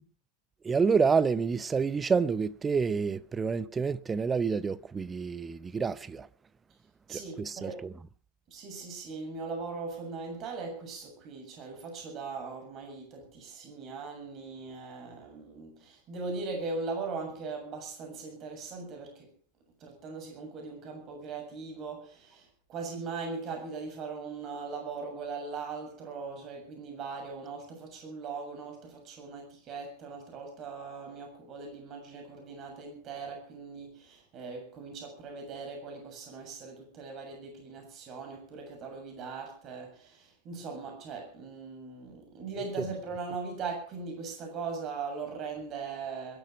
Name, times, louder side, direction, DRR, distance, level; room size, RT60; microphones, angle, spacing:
voice 1, 0.6-6.3 7.1-7.9 42.8-42.9, right 5 dB, 15° right, 0.7 m, -28 dB
voice 2, 7.1-7.9 8.5-19.3 19.8-46.4, right 4 dB, 35° right, 7.2 m, -40 dB
21.5 x 12.0 x 5.2 m
figure-of-eight pair, 90°, 0 cm